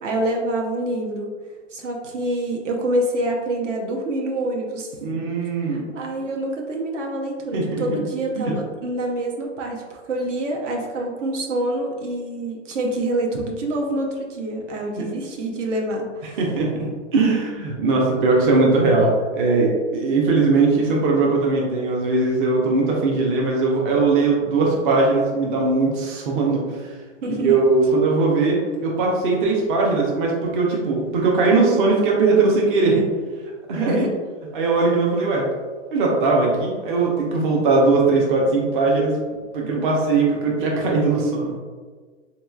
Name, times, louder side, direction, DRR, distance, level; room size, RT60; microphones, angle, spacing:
voice 1, 0.0-1.3 1.7-4.9 5.7-16.4 27.2-27.6 33.7-34.1 39.6-39.8, right 1 dB, 75° right, 0 dB, 0.9 m, -26 dB
voice 2, 5.0-5.8 7.5-7.8 8.4-8.5 15.0-15.1 16.4-26.9 27.4-33.0 33.7-34.0 34.5-35.4 35.9-39.1 39.5-41.6, right 3 dB, 45° right, -2 dB, 0.6 m, -20 dB
3.8 x 2.9 x 2.3 m, 1.5 s
hypercardioid pair, 150°, 37 cm